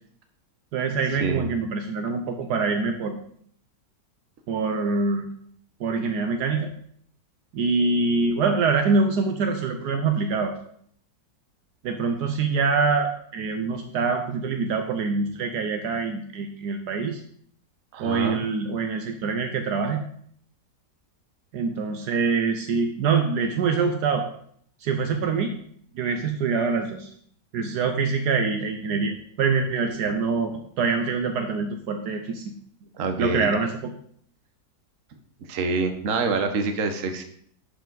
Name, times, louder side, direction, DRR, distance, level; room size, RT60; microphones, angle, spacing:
voice 1, 0.7-3.1 4.5-5.3 5.8-6.7 7.5-10.5 11.8-17.2 18.0-20.0 21.5-24.2 24.8-25.5 25.9-27.1 27.5-32.4 33.2-33.7, right 4 dB, 70° right, 6 dB, 1.2 m, -25 dB
voice 2, 17.9-18.4 33.0-33.5 35.5-37.2, right 3 dB, 55° right, 7 dB, 1.2 m, -26 dB
11.0 x 4.9 x 3.9 m, 0.63 s
omnidirectional pair, 1.9 m